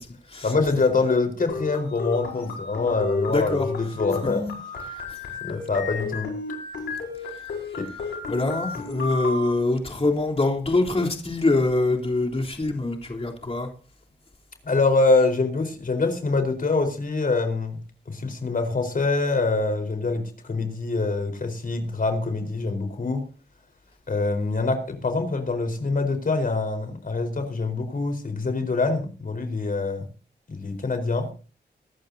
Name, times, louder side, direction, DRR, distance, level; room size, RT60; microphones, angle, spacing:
voice 1, 0.4-4.4 5.4-6.3 7.8-7.9 14.6-17.8 18.1-23.2 24.1-30.1 30.5-31.3, left 3 dB, 50° left, 4.5 m, -25 dB
sound 1, 1.5-9.5, left 3 dB, 85° left, 5.4 m, -32 dB
voice 2, 3.3-3.7 4.9-5.2 8.3-13.7, left 2 dB, 35° left, 3.6 m, -24 dB
24.5 x 12.0 x 2.8 m
cardioid pair, 55°, 18 cm